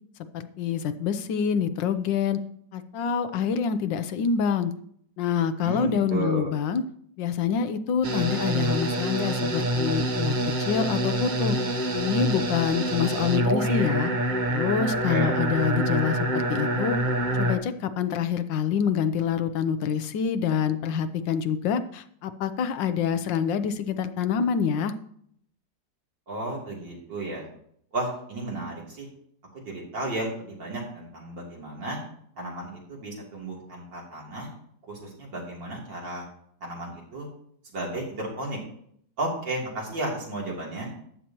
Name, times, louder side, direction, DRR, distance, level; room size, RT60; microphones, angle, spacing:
voice 1, 0.3-2.4 2.7-4.7 5.2-6.8 7.2-10.3 10.6-11.6 11.9-14.1 14.5-17.0 17.4-24.9, left 7 dB, 85° left, 11 dB, 1.5 m, -26 dB
voice 2, 5.6-6.5 15.0-15.4 26.3-27.4 27.9-29.1 29.5-32.0 32.4-34.5 34.9-36.2 36.6-37.3 37.7-38.6 39.2-40.9, right 2 dB, 80° right, -3 dB, 3.9 m, -33 dB
sound 1, 8.0-17.6, right 1 dB, 35° right, 0.8 m, -26 dB
14.0 x 9.8 x 3.0 m, 0.66 s
omnidirectional pair, 2.0 m